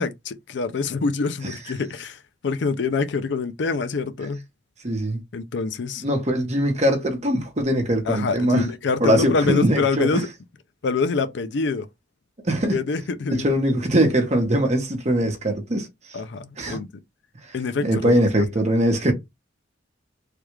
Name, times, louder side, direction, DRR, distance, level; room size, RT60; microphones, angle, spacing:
voice 1, 0.0-4.4 5.3-6.0 8.1-10.3 10.8-11.9 12.7-13.5 16.1-16.9 17.5-18.1, left 4 dB, 65° left, 0.4 m, -25 dB
voice 2, 4.8-5.2 6.0-8.7 9.0-10.2 12.4-12.8 13.3-15.9 16.6-16.8 17.8-19.1, right 1 dB, 35° right, 1.0 m, -21 dB
3.4 x 2.3 x 3.1 m
head